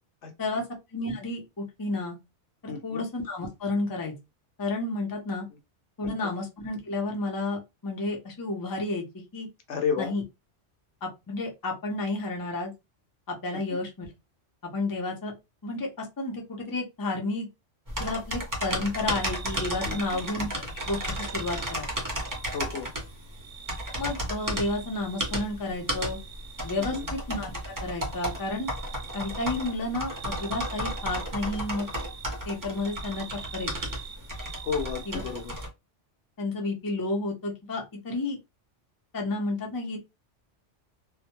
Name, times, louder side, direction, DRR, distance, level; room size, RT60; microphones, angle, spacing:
voice 1, 0.2-0.6 2.7-3.0 6.0-6.3 9.7-10.1 13.5-13.8 19.8-20.2 22.5-22.9 26.9-27.1 34.6-35.5, left 6 dB, 70° left, 0.9 m, -32 dB
voice 2, 0.9-2.2 2.6-4.1 4.6-5.5 6.0-9.5 10.0-10.2 11.0-12.7 13.3-14.1 14.6-15.3 15.6-17.5 18.0-20.5 20.8-21.9 24.0-26.2 26.6-27.0 27.3-27.5 27.8-28.7 29.1-31.9 32.5-33.3 33.5-33.7 35.1-35.2 36.4-38.4 39.1-40.0, left 2 dB, 25° left, 0.5 m, -31 dB
sound 1, 17.9-35.7, equal, 20° right, 0.6 m, -34 dB
sound 2, 19.0-35.7, right 7 dB, 80° right, 0.9 m, -46 dB
2.2 x 2.1 x 2.9 m
omnidirectional pair, 1.3 m